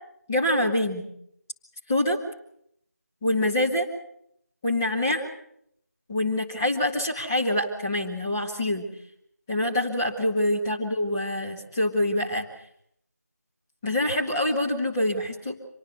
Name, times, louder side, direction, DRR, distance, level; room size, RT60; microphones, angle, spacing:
voice 1, 0.3-1.1 1.9-2.2 3.2-3.9 4.6-5.3 6.1-8.9 9.5-12.5 13.8-15.6, left 1 dB, 10° left, -2 dB, 1.7 m, -25 dB
26.0 x 19.5 x 6.9 m, 0.72 s
figure-of-eight pair, 170°, 9 cm